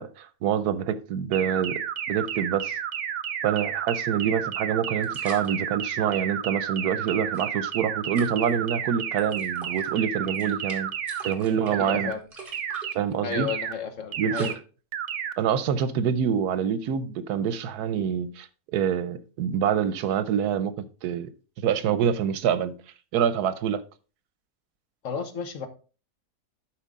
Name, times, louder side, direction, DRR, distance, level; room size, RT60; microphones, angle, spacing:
voice 1, 0.0-1.8 2.1-2.8 3.4-10.9 11.2-12.1 12.9-13.5 14.2-14.6 15.4-21.3 21.6-22.7 23.1-23.8, right 8 dB, 85° right, 1.2 m, -26 dB
sound 1, 1.3-11.3 11.7-12.1 12.5-12.9 13.3-13.7 14.1-14.5 14.9-15.3, right 9 dB, 60° right, 0.9 m, -31 dB
sound 2, 4.0-4.1 5.0-5.5 7.1-7.7 8.2-8.5 9.2-9.9 10.2-14.5, right 4 dB, 35° right, 1.7 m, -44 dB
voice 2, 11.5-12.2 13.2-14.5 25.0-25.7, left 6 dB, 55° left, 1.4 m, -33 dB
11.5 x 4.5 x 3.7 m
omnidirectional pair, 1.6 m